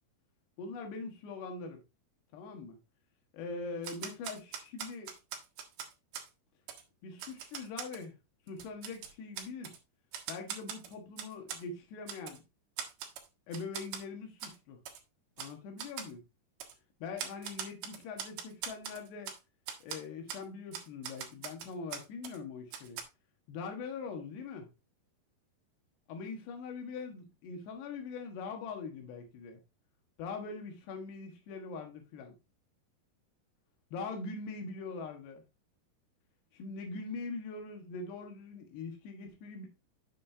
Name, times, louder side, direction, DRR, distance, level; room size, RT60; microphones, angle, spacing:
voice 1, 0.6-1.8 2.3-2.8 3.3-5.1 7.0-8.2 8.5-9.8 10.3-12.4 13.5-14.8 15.4-16.3 17.0-19.3 19.8-23.0 23.5-24.7 26.1-29.6 30.2-32.4 33.9-35.4 36.5-39.7, left 4 dB, 80° left, 3.6 m, -42 dB
Typewriter, 3.8-6.3 6.7-6.8 7.2-8.0 8.5-9.8 10.1-11.6 12.1-12.4 12.8-13.3 13.5-14.0 14.4-14.6 14.9-15.0 15.4-15.5 15.8-16.1 16.6-16.7 17.2-19.4 19.7-20.0 20.3-20.4 20.7-22.4 22.7-23.0, right 8 dB, 80° right, 3.3 m, -42 dB
9.0 x 6.6 x 2.7 m
omnidirectional pair, 4.8 m